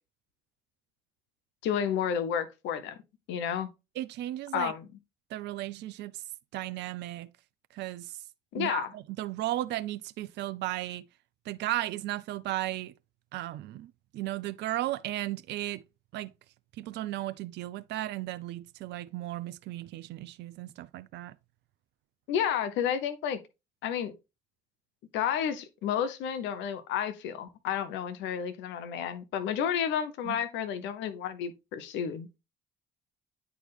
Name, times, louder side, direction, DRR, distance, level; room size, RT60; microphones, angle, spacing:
voice 1, 1.6-3.0 3.3-3.7 4.5-4.9 8.5-8.9 22.3-23.4 23.8-24.1 25.1-32.4, left 8 dB, 70° left, 0.9 m, -31 dB
voice 2, 4.0-4.7 5.3-6.2 6.5-7.3 7.7-8.2 8.6-11.0 11.5-12.9 13.3-15.8 16.1-16.3 16.8-21.3 30.3-30.4, right 15 dB, 60° right, 0.5 m, -35 dB
9.2 x 4.7 x 3.4 m
hypercardioid pair, 50°, 20 cm